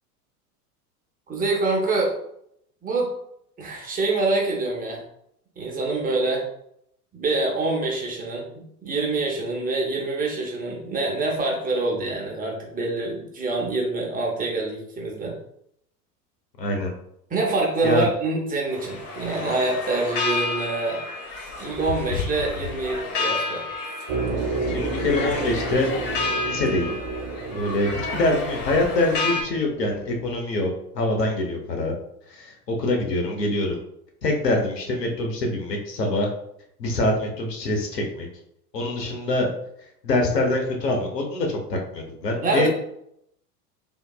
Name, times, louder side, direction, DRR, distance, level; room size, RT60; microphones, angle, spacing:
voice 1, 1.3-2.1 2.8-3.1 3.6-5.0 5.6-6.5 7.1-15.3 17.3-21.0 21.6-23.6 42.4-42.7, right 2 dB, 20° right, -1 dB, 0.8 m, -25 dB
voice 2, 16.6-16.9 17.8-18.1 24.7-25.9 26.4-27.0 27.5-31.9 32.3-33.8 34.2-36.3 36.8-38.3 38.7-39.5 40.0-42.7, left 2 dB, 85° left, 1 dB, 1.0 m, -24 dB
sound 1, 18.7-29.4, left 3 dB, 50° left, 1.1 m, -30 dB
sound 2, 24.1-30.4, right 3 dB, 45° right, 1.0 m, -31 dB
3.5 x 2.7 x 2.3 m, 0.73 s
figure-of-eight pair, 85°, 47 cm